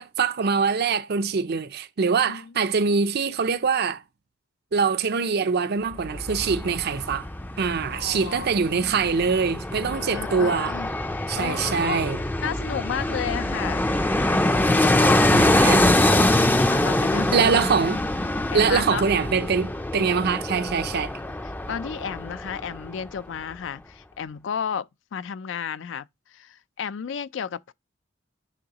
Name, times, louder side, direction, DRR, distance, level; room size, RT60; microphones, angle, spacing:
voice 1, 0.0-4.0 4.7-7.3 7.6-10.7 11.3-12.2 15.3-15.9 17.3-18.0 18.5-21.1, right 5 dB, 55° right, 0.5 m, -24 dB
Fixed-wing aircraft airplane, 5.9-22.9 23.2-23.3, left 1 dB, 10° left, 0.4 m, -24 dB
voice 2, 7.9-8.9 10.0-10.9 11.4-12.1 12.4-13.9 14.4-15.3 16.0-17.7 18.4-19.0 21.7-27.7, left 7 dB, 70° left, 0.4 m, -33 dB
10.0 x 3.5 x 2.9 m
head